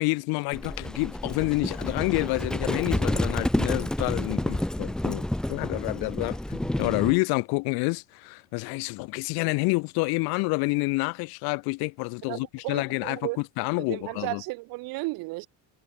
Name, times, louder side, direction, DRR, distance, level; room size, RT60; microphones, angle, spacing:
voice 1, 0.0-13.3 13.6-14.4, left 28 dB, 70° left, 1.0 m, -28 dB
Livestock farm animals working animals, 0.5-7.2, left 1 dB, ahead, 0.6 m, -29 dB
voice 2, 12.3-13.4 13.8-15.5, right 24 dB, 65° right, 1.2 m, -34 dB
cardioid pair, 175°, 38 cm